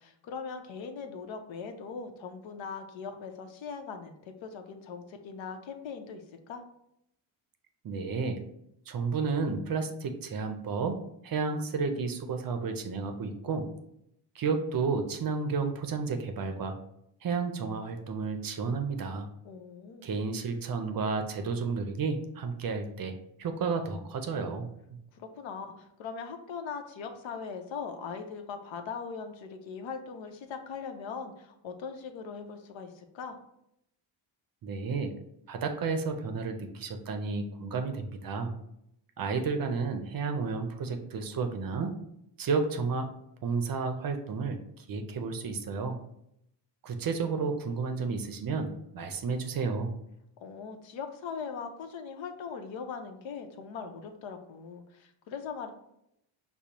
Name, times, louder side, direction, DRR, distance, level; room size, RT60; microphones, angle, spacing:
voice 1, 0.0-6.6 19.4-20.1 25.1-33.4 50.4-55.7, left 5 dB, 70° left, 6 dB, 0.7 m, -40 dB
voice 2, 7.8-8.4 8.9-10.9 11.2-13.7 14.4-16.7 17.2-19.3 20.0-23.1 23.4-24.7 34.6-35.1 35.5-38.5 39.2-41.9 42.4-43.1 43.4-44.6 44.9-46.0 46.8-49.9, right 4 dB, 45° right, 6 dB, 0.6 m, -31 dB
5.1 x 2.0 x 2.9 m, 0.78 s
cardioid pair, 90°, 48 cm